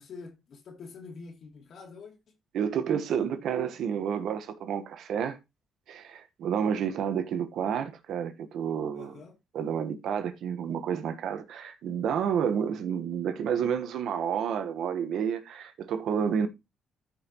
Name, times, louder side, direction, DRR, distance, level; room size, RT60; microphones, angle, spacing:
voice 1, 0.0-2.2 8.9-9.3, left 4 dB, 60° left, 2.8 m, -46 dB
voice 2, 2.5-5.4 5.9-9.2 9.5-16.5, right 8 dB, 75° right, 1.2 m, -30 dB
14.0 x 5.6 x 3.0 m
cardioid pair, 90°, 0 cm